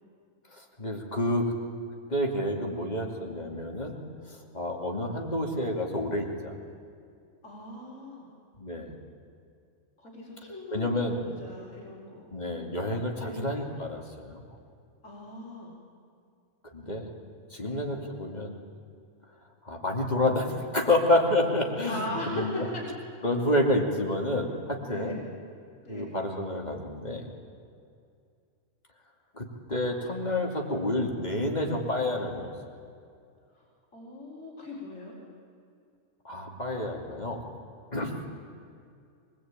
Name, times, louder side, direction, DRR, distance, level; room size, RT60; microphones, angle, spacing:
voice 1, 0.5-1.5 2.1-4.0 4.3-6.5 8.6-8.9 10.7-11.2 12.3-14.4 16.7-17.1 17.5-18.6 19.6-22.7 23.2-25.2 25.9-27.3 29.3-32.5 36.2-37.4 37.9-38.2, left 1 dB, 30° left, 1 dB, 2.7 m, -29 dB
voice 2, 7.4-8.3 10.0-12.3 13.2-13.4 15.0-15.7 17.6-17.8 21.9-22.8 24.8-25.2 25.8-26.1 33.5-33.6 33.9-35.2 38.0-38.1, left 1 dB, 70° left, -3 dB, 4.6 m, -39 dB
24.0 x 20.5 x 8.9 m, 2.4 s
omnidirectional pair, 1.4 m